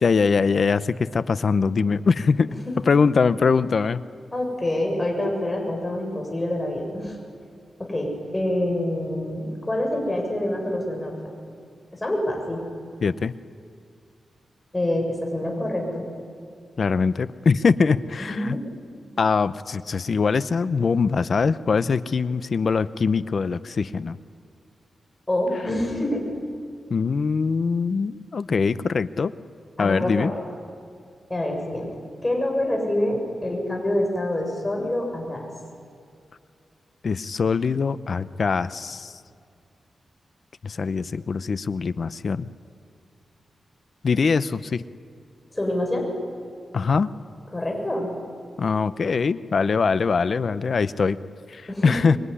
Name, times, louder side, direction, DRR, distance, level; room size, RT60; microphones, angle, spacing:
voice 1, 0.0-4.0 13.0-13.3 16.8-18.6 19.2-24.2 26.9-29.3 29.8-30.3 37.0-39.1 40.6-42.5 44.0-44.8 46.7-47.1 48.6-51.2 51.5-52.2, left 5 dB, 55° left, 14 dB, 0.8 m, -22 dB
voice 2, 4.3-7.2 7.8-11.1 11.9-12.6 14.7-16.1 18.2-18.6 25.3-26.2 29.8-30.3 31.3-31.9 32.2-35.5 45.5-46.1 47.5-48.1 51.7-51.9, left 1 dB, 20° left, 1 dB, 7.4 m, -26 dB
25.0 x 23.0 x 10.0 m, 2.3 s
wide cardioid pair, 100°, 0 cm